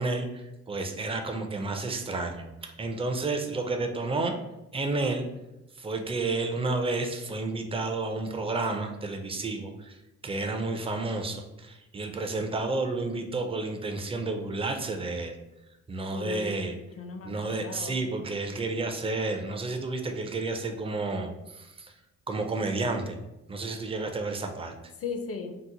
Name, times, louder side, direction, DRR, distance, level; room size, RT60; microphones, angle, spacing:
voice 1, 0.0-4.4 4.7-5.3 5.8-10.0 10.2-15.3 15.9-16.8 17.2-21.9 22.3-23.2 23.5-24.7, right 3 dB, 20° right, 5 dB, 0.4 m, -31 dB
voice 2, 16.1-18.0 25.0-25.5, left 5 dB, 50° left, 6 dB, 0.5 m, -37 dB
2.8 x 2.0 x 3.8 m, 0.93 s
cardioid pair, 105°, 31 cm